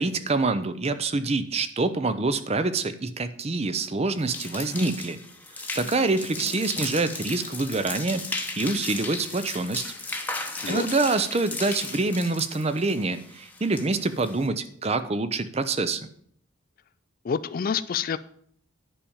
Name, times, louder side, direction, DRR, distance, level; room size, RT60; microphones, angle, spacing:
voice 1, 0.0-5.2 5.7-9.8 10.7-16.1, right 3 dB, 30° right, 12 dB, 0.6 m, -26 dB
sound 1, 4.2-14.5, left 3 dB, 10° left, 0.9 m, -36 dB
voice 2, 17.2-18.2, left 6 dB, 40° left, 15 dB, 0.3 m, -27 dB
10.0 x 5.1 x 7.0 m, 0.63 s
head